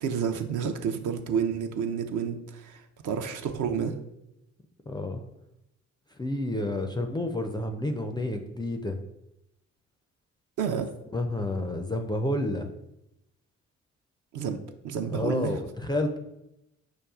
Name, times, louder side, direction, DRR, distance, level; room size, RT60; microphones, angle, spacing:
voice 1, 0.0-4.0 10.6-10.9 14.3-14.6 14.8-15.5, right 7 dB, 55° right, 7 dB, 0.6 m, -30 dB
voice 2, 4.9-5.2 6.1-9.0 11.1-12.7 15.1-16.2, left 1 dB, 10° left, 5 dB, 0.4 m, -30 dB
6.1 x 2.3 x 2.4 m, 0.86 s
figure-of-eight pair, 40°, 38 cm